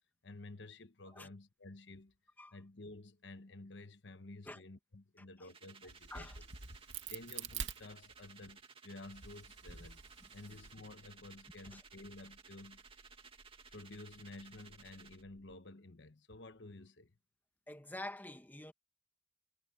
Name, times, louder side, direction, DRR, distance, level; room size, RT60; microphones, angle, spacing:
voice 1, 0.2-2.1 2.5-6.5 7.1-10.0 10.3-12.8 13.7-17.1, left 2 dB, 70° left, 1.1 m, -52 dB
sound 1, 5.5-15.2, right 5 dB, 30° right, 2.2 m, -58 dB
Crack, 5.9-8.5 9.0-10.7, right 7 dB, 85° right, 2.6 m, -46 dB
sound 2, 9.1-15.6, equal, 60° right, 6.5 m, -67 dB
voice 2, 17.7-18.7, left 1 dB, 10° left, 1.8 m, -47 dB
head